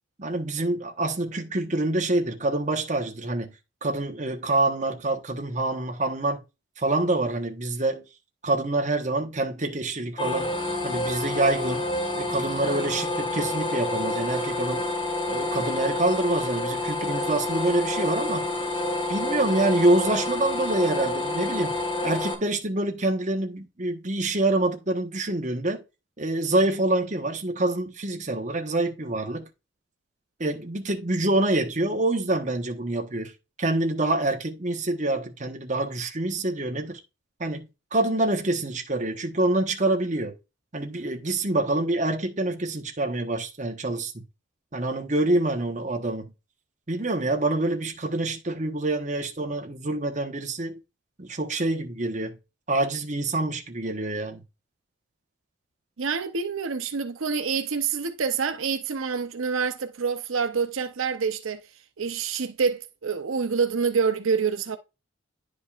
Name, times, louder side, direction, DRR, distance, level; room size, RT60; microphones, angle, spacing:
voice 1, 0.2-3.5 3.8-6.4 6.8-8.0 8.4-10.5 10.8-11.9 12.1-14.9 15.3-18.5 19.1-25.8 26.2-29.5 30.4-33.3 33.6-37.0 37.4-40.3 40.7-44.2 44.7-46.3 46.9-50.8 51.2-52.4 52.7-54.4, right 2 dB, 35° right, 1.1 m, -26 dB
sound 1, 10.2-22.3, left 2 dB, 25° left, 1.5 m, -28 dB
voice 2, 56.0-61.6 62.0-64.8, right 5 dB, 85° right, 0.7 m, -27 dB
10.0 x 5.2 x 2.5 m
head